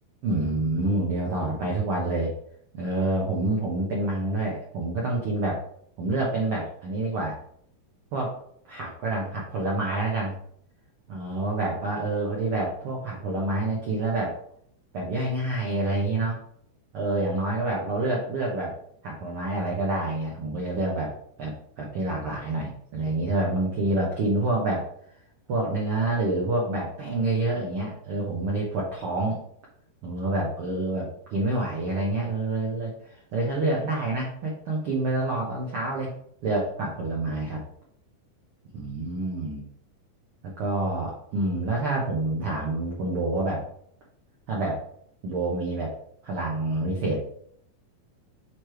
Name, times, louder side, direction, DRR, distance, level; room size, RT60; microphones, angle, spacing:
voice 1, 0.2-2.3 2.7-5.6 6.0-7.4 8.1-8.4 8.7-10.4 11.1-14.4 14.9-16.4 16.9-18.8 19.0-21.1 21.4-24.8 25.5-29.4 30.0-36.1 36.4-37.6 38.7-39.6 40.6-43.6 44.5-44.8 45.2-45.9 46.2-47.4, right 2 dB, 75° right, -3 dB, 1.2 m, -27 dB
6.6 x 3.3 x 4.4 m, 0.66 s
omnidirectional pair, 4.1 m